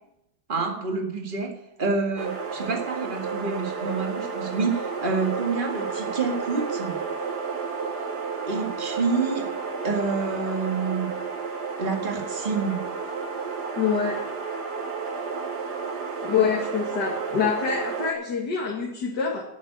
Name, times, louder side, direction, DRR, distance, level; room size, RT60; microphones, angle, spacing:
voice 1, 0.5-1.5 1.8-7.0 8.5-11.1 11.8-13.0, right 4 dB, 25° right, 2 dB, 2.0 m, -28 dB
sound 1, 2.2-18.1, right 5 dB, 60° right, 2.1 m, -32 dB
voice 2, 13.8-14.2 16.2-19.4, left 6 dB, 60° left, -2 dB, 2.6 m, -25 dB
11.5 x 9.4 x 8.6 m, 0.83 s
omnidirectional pair, 2.0 m